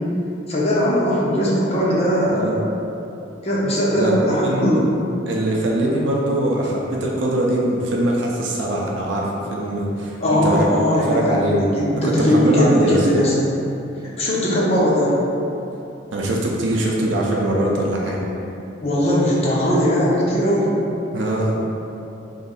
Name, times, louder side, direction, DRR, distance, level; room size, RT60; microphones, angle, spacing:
voice 1, 0.5-2.6 3.4-4.9 10.2-13.3 14.2-15.2 18.8-20.7, equal, 35° left, -6 dB, 0.8 m, -19 dB
voice 2, 4.4-4.8 5.3-11.7 12.0-13.1 16.1-18.2 21.1-21.6, right 1 dB, 85° right, -2 dB, 0.5 m, -22 dB
3.1 x 2.6 x 4.0 m, 2.8 s
head